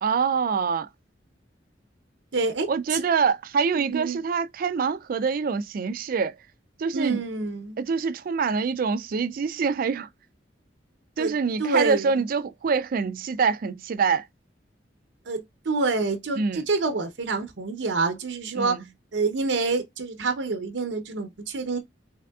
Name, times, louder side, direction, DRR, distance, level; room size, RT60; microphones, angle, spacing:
voice 1, 0.0-0.9 2.7-6.4 6.8-7.2 7.8-10.1 11.2-14.3 16.4-16.6 18.5-18.8, right 5 dB, 50° right, 0.4 m, -25 dB
voice 2, 2.3-3.0 3.9-4.2 6.9-7.8 11.2-11.3 11.6-12.1 15.3-18.8 19.1-21.8, right 3 dB, 85° right, 0.8 m, -27 dB
3.6 x 3.3 x 2.3 m
head